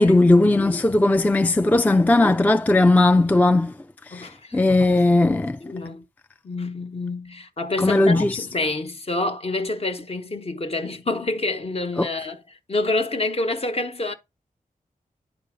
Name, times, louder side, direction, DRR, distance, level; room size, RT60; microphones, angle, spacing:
voice 1, 0.0-3.7 4.1-5.6 7.8-8.5 12.0-12.1, left 2 dB, 10° left, 0.3 m, -18 dB
voice 2, 4.1-4.9 5.2-6.0 6.4-14.1, left 2 dB, 45° left, 1.0 m, -28 dB
10.0 x 4.3 x 3.6 m
wide cardioid pair, 65°, 14 cm